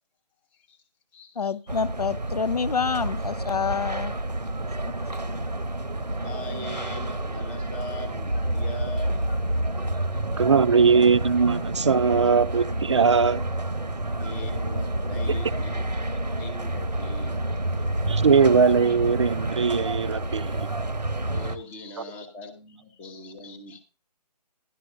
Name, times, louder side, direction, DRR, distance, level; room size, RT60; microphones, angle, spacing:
voice 1, 0.5-0.8 1.1-1.8 5.1-5.4 6.2-9.2 14.2-16.0 16.4-17.4 17.9-18.2 21.3-23.8, left 2 dB, 5° left, 0.7 m, -41 dB
voice 2, 1.4-4.1, left 6 dB, 70° left, 0.6 m, -27 dB
sound 1, 1.7-21.6, right 1 dB, 90° right, 1.0 m, -29 dB
voice 3, 10.4-13.4 18.1-20.7, right 5 dB, 45° right, 0.6 m, -20 dB
11.5 x 11.0 x 2.6 m
figure-of-eight pair, 150°, 21 cm